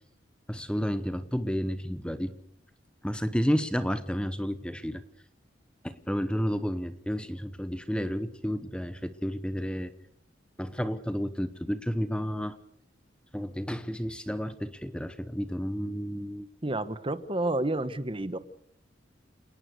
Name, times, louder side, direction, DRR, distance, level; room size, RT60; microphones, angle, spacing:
voice 1, 0.5-2.4 3.0-5.0 5.8-9.9 10.6-12.6 13.3-16.5, equal, 5° left, 12 dB, 1.0 m, -31 dB
voice 2, 16.6-18.4, right 2 dB, 30° right, 14 dB, 1.2 m, -30 dB
28.5 x 19.0 x 6.7 m, 0.68 s
head